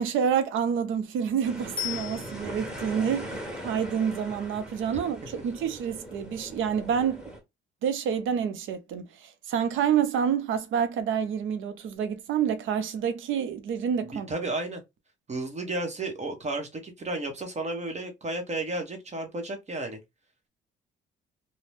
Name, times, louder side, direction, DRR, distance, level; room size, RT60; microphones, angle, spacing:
voice 1, 0.0-7.2 7.8-14.3, right 7 dB, 80° right, 0.6 m, -28 dB
sound 1, 1.4-7.4, equal, 5° right, 1.4 m, -40 dB
Bicycle bell, 1.8-2.9 12.0-12.1, left 10 dB, 25° left, 0.5 m, -36 dB
voice 2, 14.1-14.8 15.3-20.0, right 2 dB, 35° right, 1.0 m, -33 dB
2.5 x 2.1 x 3.3 m
cardioid pair, 90°, 20 cm